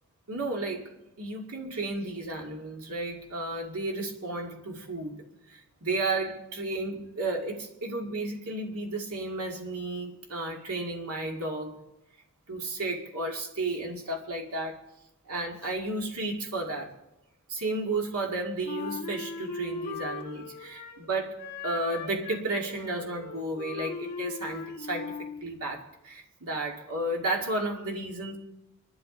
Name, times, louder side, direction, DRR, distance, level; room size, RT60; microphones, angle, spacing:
voice 1, 0.3-0.9 1.2-5.2 5.5-11.8 12.5-14.8 15.3-16.9 17.5-28.4, right 2 dB, 80° right, 1 dB, 2.2 m, -33 dB
Wind instrument woodwind instrument, 18.6-21.1 21.4-25.5, left 4 dB, 40° left, 2.0 m, -39 dB
26.5 x 12.0 x 3.9 m, 0.92 s
head